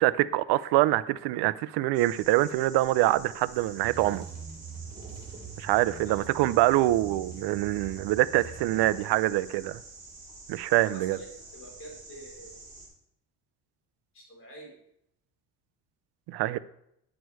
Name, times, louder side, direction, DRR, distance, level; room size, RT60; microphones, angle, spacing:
voice 1, 0.0-4.2 5.6-9.8 10.5-11.2 16.3-16.6, right 16 dB, 80° right, 0.5 m, -25 dB
sound 1, 1.9-12.9, right 3 dB, 20° right, 3.5 m, -48 dB
sound 2, 3.4-9.4, right 6 dB, 40° right, 2.3 m, -44 dB
voice 2, 10.7-12.7 14.1-14.8, equal, 30° left, 4.1 m, -47 dB
9.5 x 6.2 x 4.7 m
cardioid pair, 160°, 39 cm